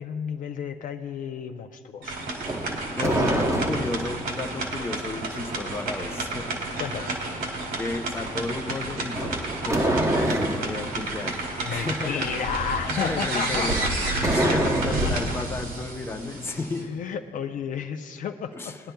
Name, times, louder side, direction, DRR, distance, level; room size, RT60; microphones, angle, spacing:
voice 1, 0.0-2.2 3.1-3.5 6.8-7.1 11.6-13.9 14.2-14.4 15.1-15.2 16.8-18.7, left 7 dB, 50° left, 6 dB, 0.5 m, -32 dB
sound 1, 2.0-16.8, right 2 dB, 80° right, 2.3 m, -31 dB
sound 2, 2.4-4.2 9.1-10.7 13.6-15.3, right 1 dB, 20° right, 0.9 m, -26 dB
voice 2, 3.0-6.6 7.8-9.4 9.6-11.4 11.7-12.5 12.9-16.9 18.5-18.8, left 3 dB, 15° left, 4 dB, 0.7 m, -32 dB
20.5 x 10.0 x 2.3 m, 2.2 s
cardioid pair, 110°, 17 cm